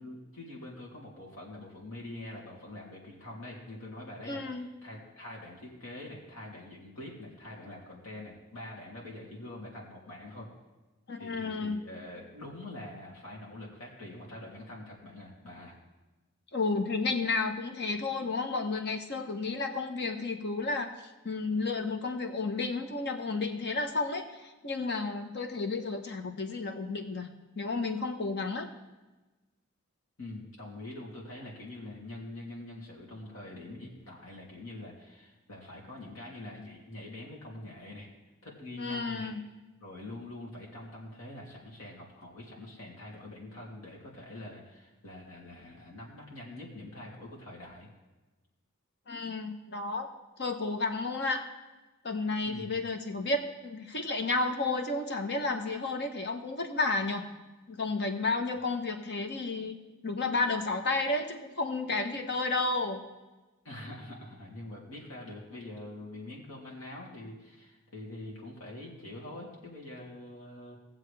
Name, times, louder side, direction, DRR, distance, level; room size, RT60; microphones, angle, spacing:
voice 1, 0.0-10.5 11.2-15.7 30.2-38.1 38.4-39.3 39.8-47.9 52.4-52.9 63.6-70.8, left 1 dB, 75° left, -3 dB, 3.0 m, -45 dB
voice 2, 4.3-4.7 11.1-11.8 16.5-20.9 21.2-27.3 27.6-28.7 38.8-39.4 49.1-50.1 50.4-51.4 52.0-57.2 57.7-59.8 60.0-63.0, left 3 dB, 55° left, 5 dB, 1.2 m, -32 dB
18.5 x 7.4 x 3.4 m, 1.1 s
head